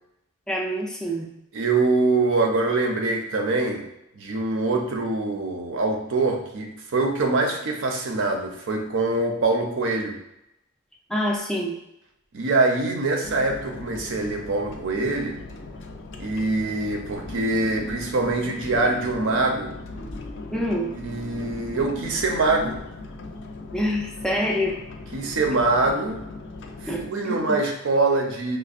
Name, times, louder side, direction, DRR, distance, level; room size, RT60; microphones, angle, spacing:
voice 1, 0.5-1.3 11.1-11.8 20.5-20.9 23.7-24.8 26.9-27.6, equal, 5° left, -1 dB, 0.4 m, -26 dB
voice 2, 1.5-3.8 4.1-10.2 12.3-15.4 16.2-19.7 20.9-22.8 25.1-26.2 26.8-28.6, right 3 dB, 60° right, 2 dB, 0.6 m, -24 dB
sound 1, 13.2-27.1, left 3 dB, 60° left, 0.4 m, -39 dB
sound 2, 17.1-22.8, right 2 dB, 85° left, 0.9 m, -39 dB
5.1 x 2.1 x 2.4 m, 0.85 s
head